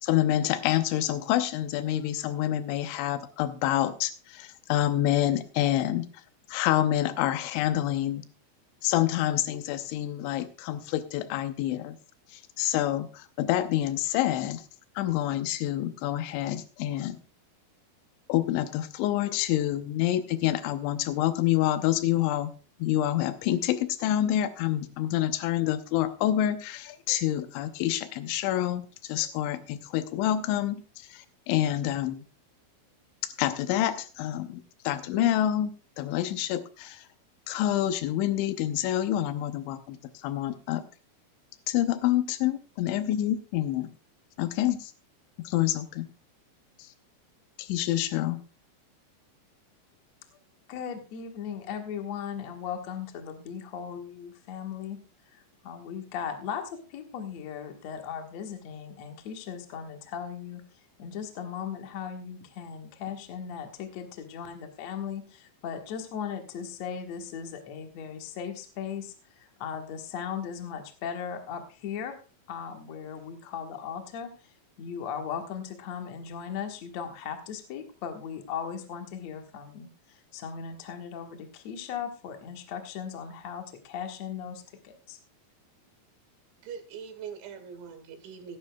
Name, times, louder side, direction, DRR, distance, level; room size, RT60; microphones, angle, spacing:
voice 1, 0.0-6.1 6.5-8.2 8.8-12.0 12.3-14.7 15.0-17.2 18.3-22.5 22.8-30.8 31.1-32.2 33.2-35.7 36.0-37.0 37.5-40.8 41.7-43.9 44.4-44.9 45.4-46.1 46.8-46.9 47.6-48.4, left 12 dB, 85° left, 10 dB, 3.2 m, -27 dB
voice 2, 50.7-60.6 61.0-72.2 72.5-85.2, left 7 dB, 65° left, 4 dB, 1.7 m, -38 dB
voice 3, 86.6-88.6, right 7 dB, 85° right, 6 dB, 4.3 m, -42 dB
17.5 x 11.0 x 2.3 m, 0.35 s
omnidirectional pair, 5.2 m